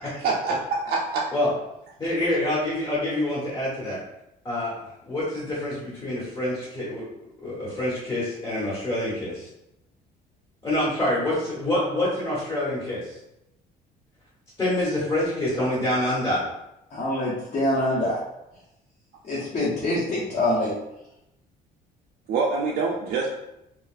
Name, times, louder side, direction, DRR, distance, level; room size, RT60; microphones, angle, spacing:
voice 1, 0.2-1.3 22.3-23.3, right 4 dB, 65° right, -1 dB, 0.5 m, -25 dB
voice 2, 2.0-4.0 4.4-4.8 5.0-7.0 7.4-9.5 10.6-13.2 14.6-16.4, left 1 dB, 20° left, -8 dB, 1.4 m, -26 dB
voice 3, 16.9-18.2 19.2-20.7, left 1 dB, 40° left, -8 dB, 1.0 m, -25 dB
4.0 x 2.4 x 2.5 m, 0.87 s
cardioid pair, 110°, 17 cm